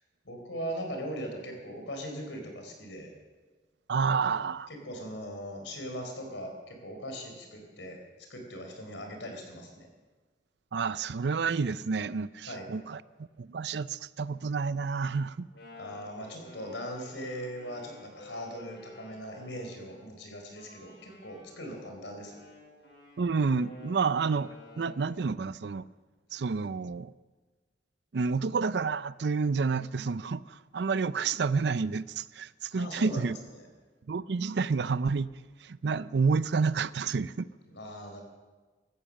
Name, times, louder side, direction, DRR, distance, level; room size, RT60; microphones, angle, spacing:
voice 1, 0.2-3.1 4.8-8.0 8.3-9.9 12.5-12.7 15.7-22.4 32.8-33.3 33.6-33.7 37.7-38.2, equal, 90° left, 3 dB, 4.1 m, -40 dB
voice 2, 3.9-4.7 10.7-13.0 13.4-15.5 23.2-24.5 24.8-25.8 26.3-27.1 28.1-33.4 34.1-35.3 35.6-37.5, right 5 dB, 70° right, 17 dB, 0.5 m, -29 dB
Wind instrument woodwind instrument, 15.3-20.1 20.5-25.2, left 2 dB, 75° left, 5.3 m, -52 dB
16.0 x 14.0 x 6.5 m, 1.3 s
head